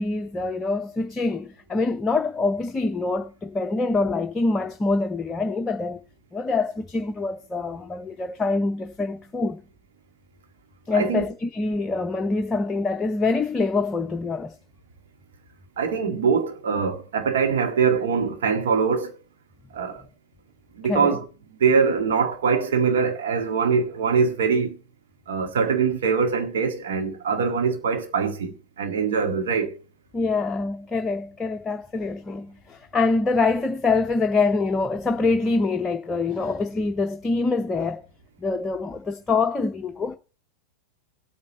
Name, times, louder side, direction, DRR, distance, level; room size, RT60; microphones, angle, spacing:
voice 1, 0.0-6.0 6.3-9.6 10.9-14.5 20.8-21.2 30.1-38.0 38.4-40.2, left 3 dB, 15° left, 0.7 m, -25 dB
voice 2, 10.9-11.3 15.8-19.1 19.7-20.0 20.7-21.2 21.6-24.8 25.3-29.7, right 5 dB, 60° right, 1.9 m, -23 dB
17.5 x 8.6 x 4.1 m
figure-of-eight pair, 90°, 0 cm